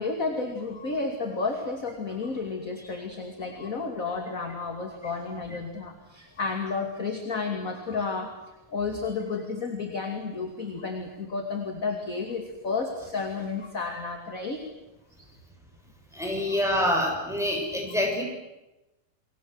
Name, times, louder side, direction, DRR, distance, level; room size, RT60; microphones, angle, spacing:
voice 1, 0.0-8.3 8.7-14.6 15.2-15.3 16.2-16.6, left 4 dB, 25° left, 4 dB, 2.5 m, -32 dB
voice 2, 16.1-18.2, left 1 dB, ahead, 0 dB, 7.1 m, -26 dB
30.0 x 22.5 x 8.1 m, 0.99 s
omnidirectional pair, 4.0 m